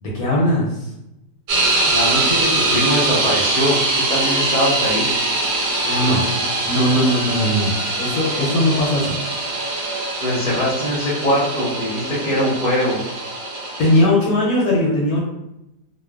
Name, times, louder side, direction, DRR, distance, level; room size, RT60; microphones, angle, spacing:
voice 1, 0.0-0.9 5.8-6.2 6.6-9.2 13.8-15.2, left 1 dB, 70° left, -4 dB, 0.9 m, -19 dB
sound 1, 1.5-14.0, right 2 dB, 90° right, 1.4 m, -22 dB
voice 2, 1.8-3.8 4.1-5.1 10.2-13.0, equal, 45° left, -5 dB, 0.5 m, -21 dB
2.9 x 2.1 x 2.2 m, 0.89 s
omnidirectional pair, 1.8 m